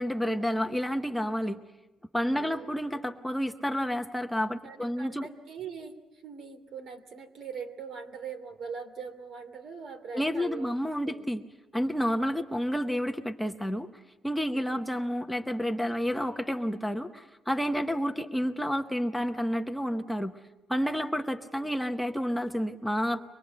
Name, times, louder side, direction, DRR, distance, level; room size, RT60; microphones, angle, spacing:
voice 1, 0.0-1.6 2.1-5.3 10.1-11.4 11.7-13.9 14.2-20.3 20.7-23.2, equal, ahead, 5 dB, 0.8 m, -30 dB
voice 2, 2.3-2.7 4.6-5.9 6.2-10.7 11.1-11.3 14.5-14.8 17.9-18.0 21.5-21.7, right 6 dB, 60° right, 6 dB, 2.8 m, -42 dB
24.5 x 21.0 x 7.9 m, 1.1 s
cardioid pair, 150°, 0 cm